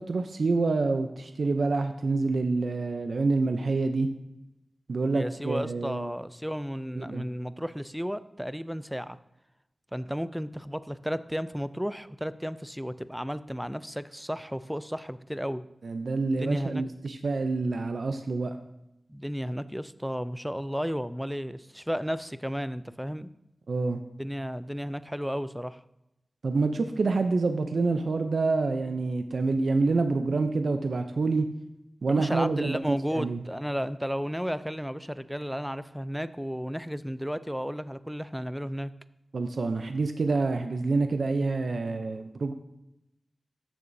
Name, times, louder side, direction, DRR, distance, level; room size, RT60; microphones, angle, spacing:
voice 1, 0.0-4.1 4.9-6.1 7.0-7.3 15.8-18.5 23.7-24.0 26.4-31.5 32.0-33.4 39.3-42.5, right 3 dB, 80° right, 7 dB, 0.5 m, -27 dB
voice 2, 5.1-9.2 9.9-15.6 16.4-16.8 19.1-23.3 24.2-25.8 32.1-38.9, equal, ahead, 14 dB, 0.3 m, -33 dB
13.5 x 6.8 x 2.6 m, 0.88 s
wide cardioid pair, 100°, 0 cm